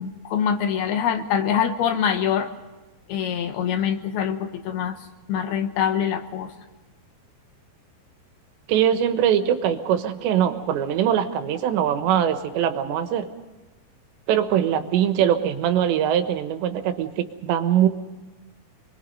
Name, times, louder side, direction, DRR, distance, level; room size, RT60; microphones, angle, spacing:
voice 1, 0.0-2.5 3.1-5.0 5.3-6.5, left 8 dB, 70° left, 7 dB, 2.9 m, -24 dB
voice 2, 8.7-13.3 14.3-17.9, right 9 dB, 85° right, 8 dB, 3.5 m, -22 dB
27.0 x 22.0 x 5.4 m, 1.2 s
omnidirectional pair, 4.9 m